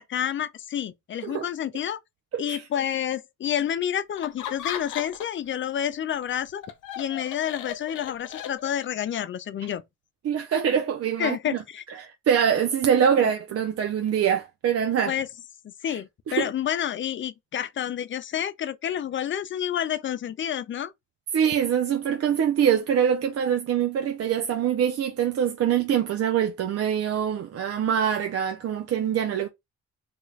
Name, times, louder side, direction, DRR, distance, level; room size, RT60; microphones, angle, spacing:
voice 1, 0.0-2.0 2.4-6.6 7.0-9.8 11.2-11.8 15.1-15.3 15.8-20.9, left 10 dB, 40° left, 0.5 m, -29 dB
voice 2, 2.3-2.6 10.2-11.6 11.9-15.1 15.9-16.0 16.3-16.5 21.3-29.5, right 8 dB, 50° right, 0.5 m, -24 dB
Laughter, 4.2-5.5 5.8-9.0, left 10 dB, 90° left, 0.7 m, -37 dB
3.5 x 2.4 x 3.1 m
cardioid pair, 90°, 30 cm